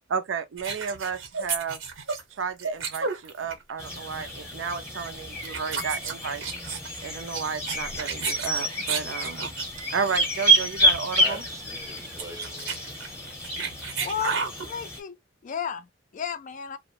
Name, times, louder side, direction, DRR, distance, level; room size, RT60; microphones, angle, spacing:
voice 1, 0.1-1.8 2.3-6.4 7.0-9.5 9.9-11.4, right 5 dB, 70° right, 0.4 m, -32 dB
sound 1, 0.6-3.7 4.0-4.2 5.0-5.1 5.4-9.7 10.1-10.2 10.5-10.6 10.8-11.0 11.3-11.4 11.8-14.7, right 5 dB, 90° right, 0.9 m, -33 dB
sound 2, 3.8-15.0, right 1 dB, 15° left, 0.8 m, -28 dB
voice 2, 11.2-13.3, right 2 dB, 15° right, 0.5 m, -42 dB
voice 3, 14.0-14.4 14.7-15.2 15.4-16.8, left 7 dB, 40° left, 0.3 m, -33 dB
2.4 x 2.0 x 2.7 m
head